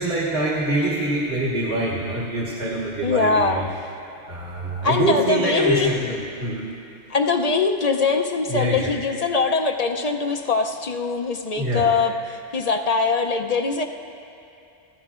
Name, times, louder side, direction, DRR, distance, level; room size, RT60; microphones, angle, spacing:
voice 1, 0.0-3.7 4.3-6.7 8.5-8.9 11.6-11.9, right 1 dB, 55° right, -8 dB, 1.9 m, -25 dB
voice 2, 3.0-3.8 4.8-5.9 7.1-13.8, left 4 dB, 45° left, 4 dB, 0.6 m, -22 dB
27.0 x 15.0 x 2.5 m, 2.7 s
omnidirectional pair, 1.2 m